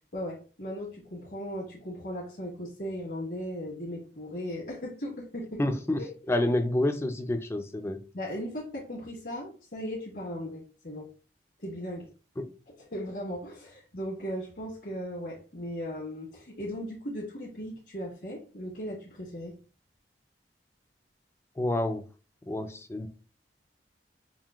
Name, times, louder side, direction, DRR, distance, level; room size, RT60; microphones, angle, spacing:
voice 1, 0.1-5.6 6.0-6.1 8.1-11.1 11.6-12.1 12.9-19.5, equal, 80° left, 1.3 m, -37 dB
voice 2, 5.6-8.0 12.4-12.5 21.6-22.0 22.5-23.1, left 1 dB, 15° left, 0.3 m, -29 dB
5.6 x 2.5 x 2.3 m
head